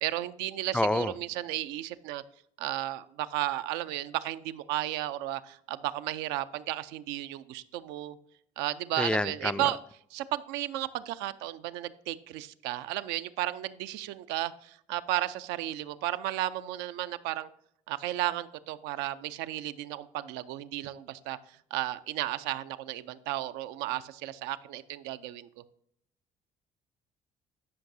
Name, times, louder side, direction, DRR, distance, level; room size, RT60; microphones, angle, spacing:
voice 1, 0.0-2.2 2.6-8.2 8.6-9.8 10.1-17.5 17.9-21.4 21.7-25.5, right 14 dB, 75° right, 13 dB, 0.4 m, -34 dB
voice 2, 0.7-1.1 9.0-9.7, left 1 dB, 5° left, 15 dB, 0.3 m, -28 dB
13.0 x 5.8 x 2.6 m, 0.70 s
hypercardioid pair, 60°, 18 cm